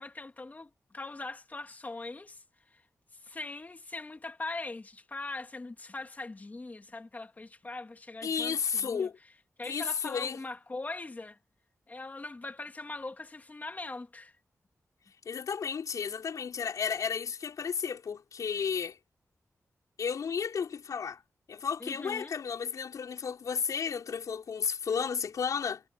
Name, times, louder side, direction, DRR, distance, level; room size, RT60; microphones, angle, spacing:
voice 1, 0.0-2.4 2.7-2.8 3.1-9.1 9.6-11.4 11.9-14.3 21.8-22.3, left 3 dB, 30° left, 2.6 m, -41 dB
voice 2, 8.2-9.1 9.6-10.4 15.3-19.0 20.0-21.2 21.5-25.8, left 6 dB, 80° left, 5.3 m, -33 dB
wide cardioid pair, 120°, 6 cm